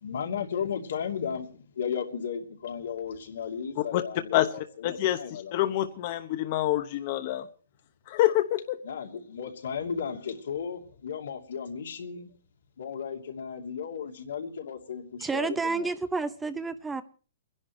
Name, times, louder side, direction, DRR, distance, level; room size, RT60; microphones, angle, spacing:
voice 1, 0.0-5.7 8.8-12.3 12.8-15.9, left 7 dB, 85° left, 2.8 m, -35 dB
voice 2, 4.8-5.2 5.5-7.4 8.1-8.8, left 14 dB, 40° left, 0.8 m, -26 dB
voice 3, 15.2-17.0, right 4 dB, 10° right, 0.6 m, -30 dB
29.5 x 11.0 x 3.1 m
hypercardioid pair, 155°, 0 cm